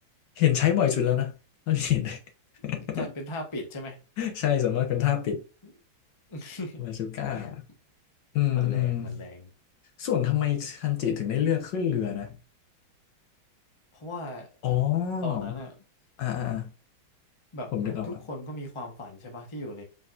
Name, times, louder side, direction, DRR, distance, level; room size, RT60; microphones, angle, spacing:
voice 1, 0.4-1.3 1.7-2.2 2.6-3.1 4.2-5.4 6.8-7.6 8.3-9.2 10.0-12.3 14.6-15.6 16.2-16.7 17.7-18.2, left 10 dB, 65° left, 1.5 m, -26 dB
voice 2, 2.7-4.0 6.3-6.8 7.3-7.5 8.5-9.5 14.0-14.5 15.2-15.7 17.5-19.8, left 1 dB, 25° left, 0.7 m, -38 dB
5.0 x 3.9 x 2.5 m
omnidirectional pair, 2.2 m